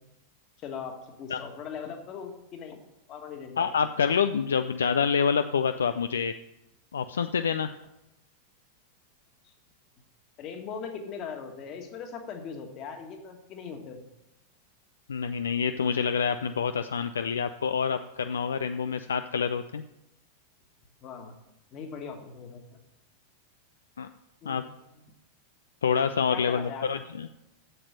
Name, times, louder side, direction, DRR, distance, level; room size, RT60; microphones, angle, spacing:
voice 1, 0.6-2.8 3.1-3.9 9.4-9.5 10.4-14.0 21.0-21.3 21.7-22.8 24.4-24.6 24.9-25.0 26.3-26.9, left 6 dB, 35° left, 5 dB, 1.7 m, -40 dB
voice 2, 3.6-6.3 6.9-7.7 15.1-19.8 24.0-24.1 24.4-24.6 25.8-27.3, left 6 dB, 70° left, 10 dB, 0.4 m, -27 dB
7.8 x 7.7 x 7.8 m, 0.90 s
figure-of-eight pair, 90°, 0 cm